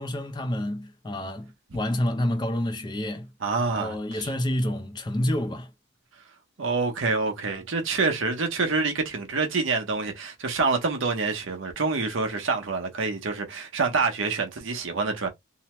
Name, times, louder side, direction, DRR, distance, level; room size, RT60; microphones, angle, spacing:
voice 1, 0.0-3.3 3.7-5.7, left 1 dB, 20° left, 0.4 m, -28 dB
voice 2, 3.4-4.3 6.6-15.3, right 4 dB, 70° right, 0.8 m, -27 dB
2.8 x 2.1 x 2.9 m
head